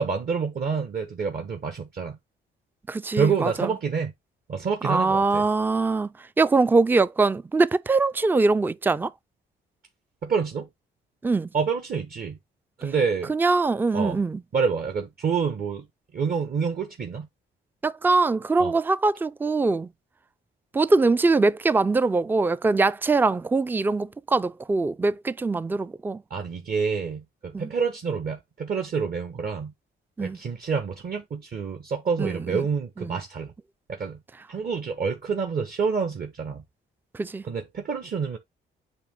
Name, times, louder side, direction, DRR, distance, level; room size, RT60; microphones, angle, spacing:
voice 1, 0.0-2.2 3.1-4.1 4.5-5.5 10.2-10.7 11.5-12.4 12.8-13.3 13.9-14.2 14.5-15.9 16.1-17.3 18.6-18.7 26.3-29.7 30.2-33.5 33.9-34.2 34.5-36.6 37.4-38.4, right 5 dB, 50° right, 1.4 m, -27 dB
voice 2, 2.9-3.7 4.8-6.1 6.4-9.1 11.2-11.5 13.3-14.4 17.8-19.9 20.7-26.2 27.5-27.7 30.2-30.4 32.2-32.6 33.0-33.1 37.2-37.4, right 3 dB, 10° right, 0.4 m, -22 dB
8.2 x 3.1 x 3.7 m
cardioid pair, 90°, 20 cm